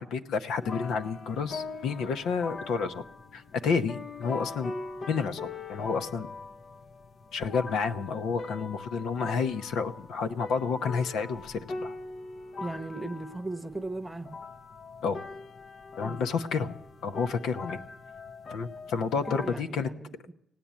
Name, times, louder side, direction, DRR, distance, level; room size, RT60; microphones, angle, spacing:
voice 1, 0.0-3.0 3.3-4.7 5.1-6.3 7.3-11.9 15.0-15.2 16.0-16.7 17.0-17.8 18.5-19.9, left 5 dB, 80° left, 0.8 m, -30 dB
sound 1, 0.6-19.6, left 3 dB, 45° left, 0.7 m, -42 dB
voice 2, 12.6-14.4 16.0-16.2 19.1-20.3, right 2 dB, 10° right, 1.0 m, -37 dB
17.0 x 9.0 x 8.3 m
cardioid pair, 90°, 0 cm